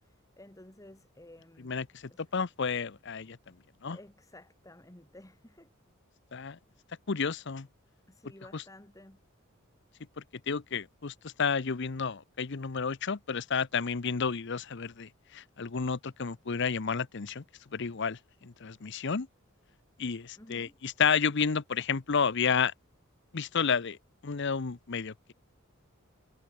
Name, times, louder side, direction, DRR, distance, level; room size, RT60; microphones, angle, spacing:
voice 1, 0.0-1.7 2.1-2.2 3.9-5.7 8.1-9.2 20.4-20.8, left 1 dB, 15° left, 1.5 m, -53 dB
voice 2, 1.6-3.4 3.8-4.0 6.3-6.6 7.1-7.7 8.5-8.6 10.5-17.4 17.7-19.3 20.0-22.7 23.3-24.0 24.2-25.3, left 6 dB, 60° left, 0.7 m, -31 dB
head